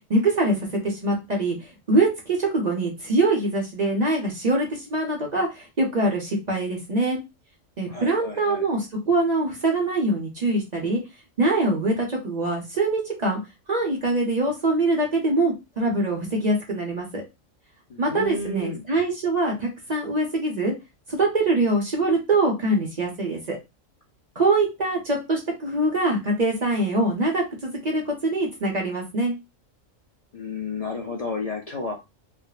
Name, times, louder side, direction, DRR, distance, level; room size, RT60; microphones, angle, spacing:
voice 1, 0.1-1.6 1.9-7.2 7.8-11.0 11.4-13.4 13.7-17.2 18.0-20.7 21.1-23.6 24.4-29.3, right 2 dB, 35° right, 0 dB, 0.8 m, -23 dB
voice 2, 7.9-8.6 17.9-18.8 30.3-32.0, left 3 dB, 70° left, -1 dB, 0.3 m, -32 dB
3.5 x 2.1 x 2.3 m, 0.24 s
omnidirectional pair, 1.4 m